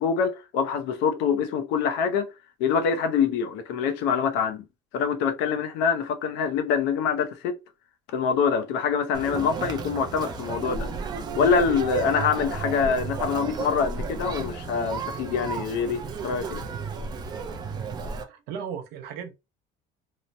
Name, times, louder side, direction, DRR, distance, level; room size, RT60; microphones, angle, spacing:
voice 1, 0.0-2.3 2.6-4.6 4.9-7.6 8.1-10.9 11.3-16.7, left 6 dB, 80° left, 0.6 m, -25 dB
Conversation, 9.1-18.2, right 4 dB, 25° right, 0.4 m, -33 dB
voice 2, 18.3-19.3, right 7 dB, 70° right, 0.6 m, -36 dB
3.0 x 2.0 x 2.6 m
cardioid pair, 175°, 18 cm